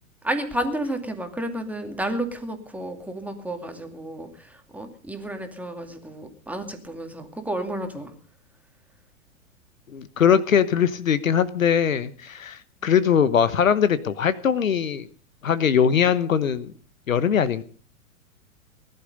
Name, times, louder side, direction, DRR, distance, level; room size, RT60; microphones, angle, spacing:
voice 1, 0.2-8.1 12.8-12.9, right 1 dB, 5° right, 5 dB, 2.3 m, -31 dB
voice 2, 9.9-15.1 15.4-16.7 17.1-17.6, left 8 dB, 70° left, 16 dB, 1.2 m, -21 dB
19.0 x 11.5 x 5.3 m, 0.44 s
figure-of-eight pair, 105°, 42 cm